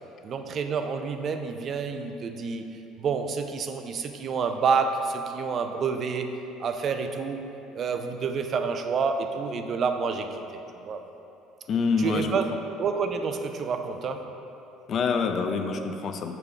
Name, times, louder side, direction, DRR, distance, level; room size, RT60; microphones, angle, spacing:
voice 1, 0.2-2.7 3.0-6.3 6.6-7.4 7.7-11.0 12.0-12.5 12.8-14.3, right 5 dB, 50° right, 6 dB, 0.5 m, -28 dB
voice 2, 11.7-12.3 14.9-16.3, left 5 dB, 50° left, 6 dB, 0.4 m, -26 dB
6.7 x 3.5 x 4.6 m, 2.9 s
hypercardioid pair, 70°, 0 cm